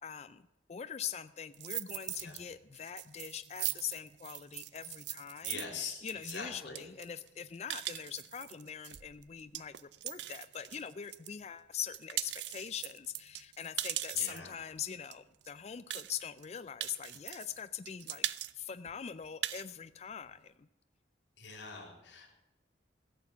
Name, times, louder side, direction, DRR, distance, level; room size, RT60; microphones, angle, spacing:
voice 1, 0.0-9.7 10.0-18.3 18.6-20.7, left 8 dB, 35° left, 12 dB, 0.3 m, -42 dB
sound 1, 1.5-2.4 2.7-11.3 11.7-14.5 15.1-15.2 15.4-15.5 15.9-16.4 16.8-17.6 17.9-18.5 18.9-19.0 19.2-19.7, right 14 dB, 75° right, 0.5 m, -40 dB
voice 2, 5.4-6.0 6.2-6.8 14.1-14.6 21.4-22.4, left 5 dB, 80° left, 0 dB, 3.5 m, -43 dB
16.5 x 7.1 x 6.9 m, 1.0 s
head